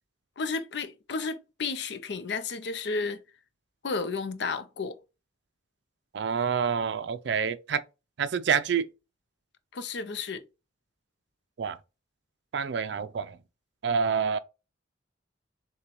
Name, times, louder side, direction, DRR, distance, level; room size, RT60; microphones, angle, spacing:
voice 1, 0.4-3.2 3.8-5.0 9.7-10.4, left 4 dB, 60° left, 0.5 m, -32 dB
voice 2, 6.1-7.8 8.2-8.9 11.6-11.8 12.5-13.4 13.8-14.4, right 6 dB, 65° right, 0.4 m, -27 dB
6.6 x 2.2 x 3.0 m
head